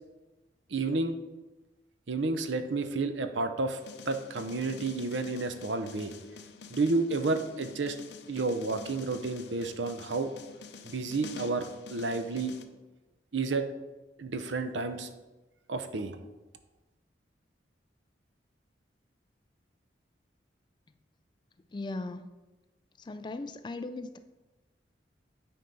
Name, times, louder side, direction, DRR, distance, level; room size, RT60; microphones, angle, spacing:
voice 1, 0.7-1.1 2.1-3.8 4.1-6.1 6.7-8.0 8.3-10.3 10.8-12.5 13.3-13.7 14.2-15.1 15.7-16.2, right 3 dB, 85° right, 9 dB, 0.7 m, -31 dB
sound 1, 3.8-12.7, left 5 dB, 70° left, 0.7 m, -48 dB
voice 2, 21.7-22.3 23.0-24.2, left 2 dB, 25° left, 10 dB, 0.3 m, -38 dB
9.5 x 4.3 x 5.4 m, 1.1 s
head